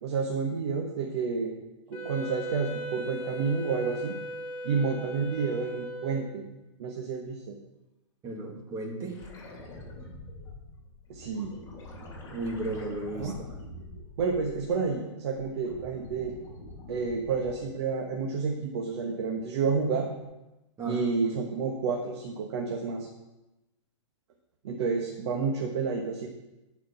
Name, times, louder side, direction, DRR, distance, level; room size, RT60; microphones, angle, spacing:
voice 1, 0.0-1.5 1.9-4.2 4.6-6.4 6.8-7.6 11.1-11.5 13.2-13.3 14.2-16.3 16.9-20.1 20.9-23.1 24.6-26.3, right 5 dB, 55° right, 2 dB, 1.4 m, -30 dB
Wind instrument woodwind instrument, 1.9-6.5, equal, 40° left, 2.2 m, -38 dB
voice 2, 8.2-9.2 12.3-13.5 20.8-21.0, right 2 dB, 20° right, 2 dB, 1.7 m, -34 dB
sound 1, 9.1-14.9 15.3-17.8 20.2-20.3, left 2 dB, 20° left, 3.3 m, -45 dB
10.5 x 5.0 x 5.6 m, 1.0 s
hypercardioid pair, 140°, 16 cm